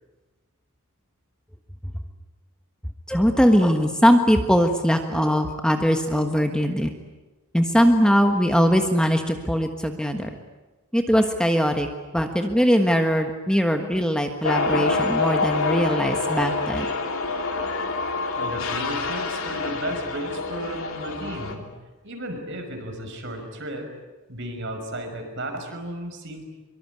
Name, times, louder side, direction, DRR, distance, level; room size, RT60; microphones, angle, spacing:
voice 1, 3.1-6.9 7.5-10.3 10.9-11.9 12.1-16.9, equal, 5° left, 5 dB, 1.4 m, -21 dB
sound 1, 14.4-21.6, left 3 dB, 65° left, 3.1 m, -26 dB
voice 2, 18.4-21.7 22.0-23.9 24.3-26.4, right 1 dB, 55° right, 4 dB, 5.8 m, -34 dB
25.0 x 23.5 x 9.7 m, 1.2 s
head